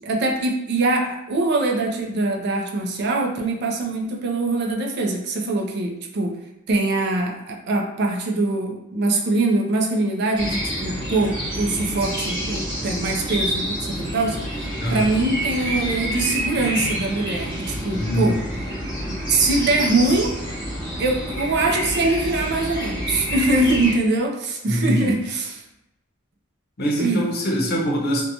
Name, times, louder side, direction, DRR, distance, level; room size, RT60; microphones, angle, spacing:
voice 1, 0.0-6.4 6.7-18.4 19.0-20.4 21.0-25.6 27.0-27.2, right 2 dB, 55° right, 1 dB, 0.4 m, -23 dB
sound 1, 10.3-23.9, equal, 25° right, 1.0 m, -28 dB
voice 2, 17.9-18.3 24.7-25.1 26.8-28.2, equal, 50° left, -2 dB, 0.6 m, -23 dB
2.8 x 2.2 x 2.6 m, 0.88 s
head